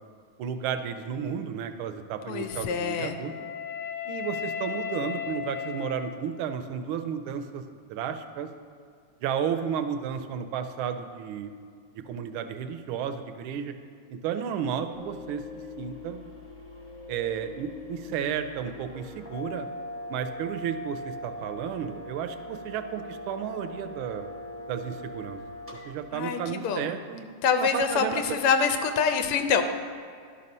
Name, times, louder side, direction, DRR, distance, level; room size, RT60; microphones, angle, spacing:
voice 1, 0.4-3.3 4.0-7.6 7.9-8.5 9.2-11.5 11.9-13.7 14.1-16.2 17.1-19.7 20.1-24.3 24.7-25.4 25.8-27.3 27.6-28.4, right 8 dB, 80° right, 8 dB, 1.4 m, -33 dB
voice 2, 2.3-3.2 26.1-27.0 27.4-29.6, left 6 dB, 90° left, 6 dB, 1.5 m, -25 dB
Wind instrument woodwind instrument, 2.4-6.6, left 8 dB, 70° left, 0.8 m, -36 dB
sound 1, 14.9-25.9, left 2 dB, 15° right, 0.4 m, -41 dB
11.5 x 4.2 x 5.3 m, 2.2 s
omnidirectional pair, 2.4 m